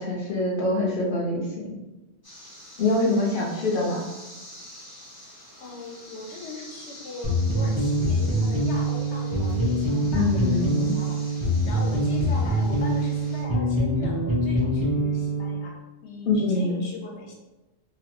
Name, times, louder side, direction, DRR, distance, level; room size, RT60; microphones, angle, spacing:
voice 1, 0.0-1.7 2.8-4.1 10.1-11.0 16.3-16.8, left 2 dB, 55° left, -3 dB, 0.7 m, -24 dB
sound 1, 2.2-13.4, equal, 25° left, 0.7 m, -46 dB
voice 2, 5.6-11.2 11.6-15.8 16.0-17.3, left 2 dB, 80° left, -1 dB, 1.0 m, -39 dB
sound 2, 7.2-15.7, right 1 dB, 25° right, 0.5 m, -24 dB
2.8 x 2.0 x 2.9 m, 1.1 s
omnidirectional pair, 1.2 m